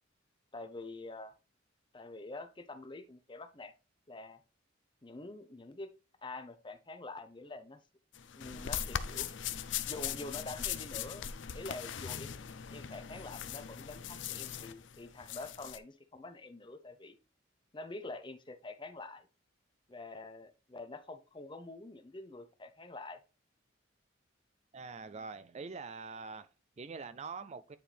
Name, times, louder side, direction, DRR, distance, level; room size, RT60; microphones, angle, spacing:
voice 1, 0.5-1.3 1.9-3.7 4.1-4.4 5.0-5.9 6.2-7.8 8.3-9.3 9.9-11.3 11.5-12.3 12.7-17.2 17.7-19.3 19.9-23.2, left 2 dB, 25° left, 0.7 m, -46 dB
sound 1, 8.1-15.8, left 9 dB, 65° left, 0.5 m, -40 dB
voice 2, 24.7-27.8, right 4 dB, 35° right, 0.4 m, -44 dB
9.2 x 4.4 x 3.4 m
head